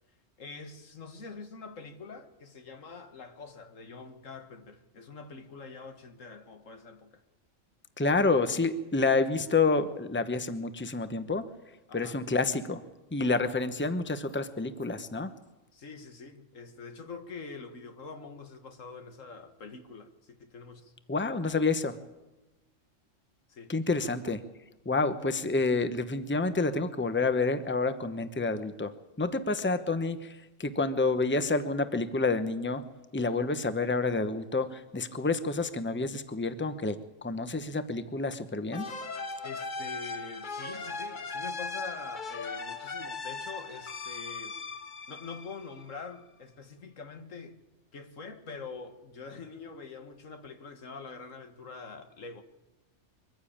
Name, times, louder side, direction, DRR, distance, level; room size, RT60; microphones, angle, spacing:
voice 1, 0.4-7.2 11.9-12.2 15.7-20.9 23.5-23.7 39.4-44.6 45.1-47.6 47.9-52.4, left 4 dB, 90° left, 2.0 m, -45 dB
voice 2, 8.0-11.5 11.9-12.8 13.1-15.3 21.1-22.0 23.7-24.4 24.8-32.8 33.1-38.9, left 3 dB, 10° left, 0.9 m, -29 dB
sound 1, 38.7-46.1, left 4 dB, 40° left, 1.3 m, -38 dB
23.0 x 15.0 x 8.8 m
omnidirectional pair, 1.3 m